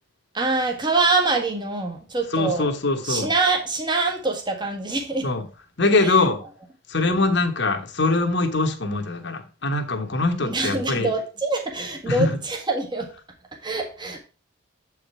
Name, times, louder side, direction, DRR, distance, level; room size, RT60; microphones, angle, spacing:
voice 1, 0.3-2.7 3.0-5.3 6.0-6.2 7.1-7.4 10.4-13.1 13.6-14.2, right 3 dB, 20° right, 1.5 m, -25 dB
voice 2, 2.3-3.3 5.2-5.4 5.8-6.4 6.9-11.1 12.1-12.4, left 3 dB, 55° left, 1.2 m, -22 dB
7.8 x 4.9 x 4.4 m
head